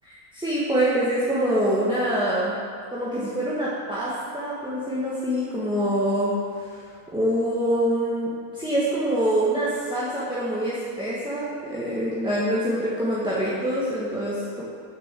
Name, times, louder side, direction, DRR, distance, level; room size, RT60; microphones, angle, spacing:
voice 1, 0.0-2.5 2.9-14.6, equal, 5° right, -8 dB, 1.2 m, -25 dB
7.1 x 6.6 x 7.4 m, 2.3 s
omnidirectional pair, 1.6 m